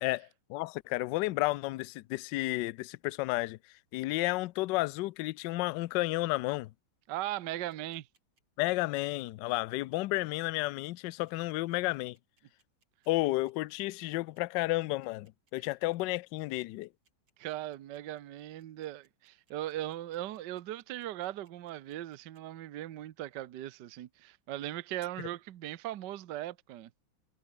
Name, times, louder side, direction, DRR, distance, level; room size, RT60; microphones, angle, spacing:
voice 1, 0.0-3.6 3.9-6.7 8.6-12.2 13.1-16.9, left 19 dB, 75° left, 1.1 m, -32 dB
voice 2, 7.1-8.1 17.4-26.9, right 14 dB, 60° right, 1.4 m, -39 dB
sound 1, 7.7-22.4, right 4 dB, 80° right, 5.2 m, -72 dB
omnidirectional pair, 2.3 m